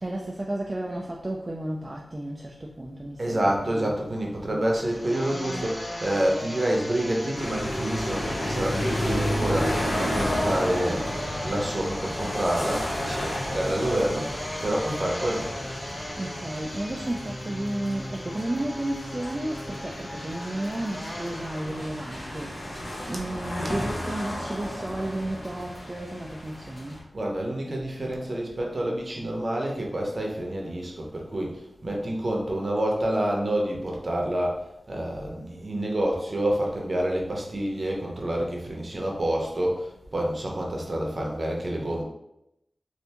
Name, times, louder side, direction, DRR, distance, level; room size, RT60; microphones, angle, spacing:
voice 1, 0.0-4.0 4.4-4.6 16.2-22.7 23.1-27.0 36.6-36.7, right 1 dB, 30° right, -1 dB, 0.3 m, -33 dB
voice 2, 3.2-11.0 11.4-14.4 14.6-15.5 27.1-34.6 34.9-42.0, right 1 dB, 50° right, -1 dB, 0.7 m, -28 dB
sound 1, 4.7-23.1, left 1 dB, 25° left, 0.6 m, -37 dB
sound 2, 7.3-27.0, equal, 65° left, 1.1 m, -32 dB
3.3 x 2.6 x 2.8 m, 0.83 s
wide cardioid pair, 75°, 0 cm